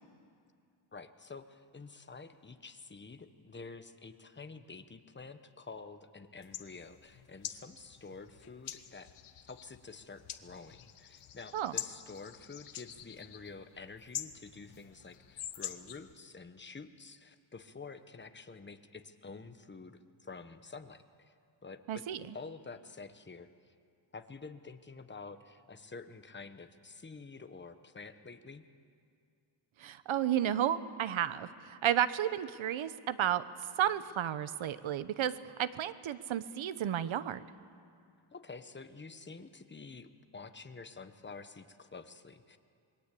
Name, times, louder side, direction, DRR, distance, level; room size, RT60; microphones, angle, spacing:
voice 1, 0.9-9.1 9.4-21.3 21.6-22.0 22.3-23.7 24.1-28.6 38.3-42.6, left 4 dB, 25° left, 9 dB, 1.2 m, -49 dB
sound 1, 6.4-16.1, left 10 dB, 90° left, 1.3 m, -46 dB
voice 2, 21.9-22.3 29.8-33.4 33.8-37.5, right 10 dB, 70° right, 14 dB, 1.0 m, -32 dB
27.5 x 21.5 x 8.4 m, 2.3 s
wide cardioid pair, 130°, 48 cm